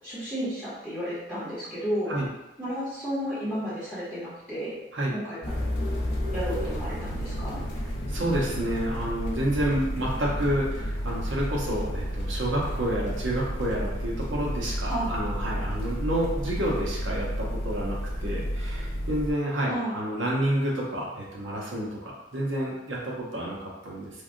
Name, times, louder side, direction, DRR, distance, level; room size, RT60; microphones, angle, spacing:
voice 1, 0.0-2.2 2.6-4.7 5.1-5.6 6.3-7.6 14.9-15.1 19.7-19.9, equal, 10° right, -12 dB, 0.8 m, -32 dB
sound 1, 5.4-19.3, equal, 70° left, 0.7 m, -31 dB
voice 2, 8.1-24.2, right 1 dB, 90° right, -4 dB, 0.9 m, -29 dB
3.3 x 2.2 x 2.5 m, 0.95 s
head